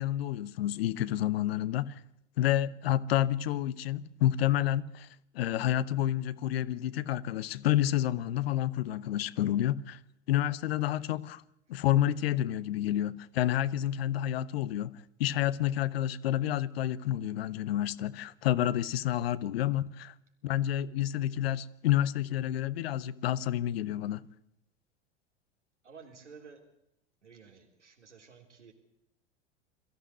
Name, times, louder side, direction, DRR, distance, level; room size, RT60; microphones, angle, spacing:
voice 1, 0.0-2.0 2.4-5.1 5.3-10.0 10.3-11.4 11.7-20.1 20.4-24.3, left 12 dB, 60° left, 0.9 m, -29 dB
voice 2, 25.8-26.7 27.2-28.7, right 5 dB, 80° right, 3.7 m, -52 dB
23.0 x 15.0 x 8.1 m
figure-of-eight pair, 80°, 35 cm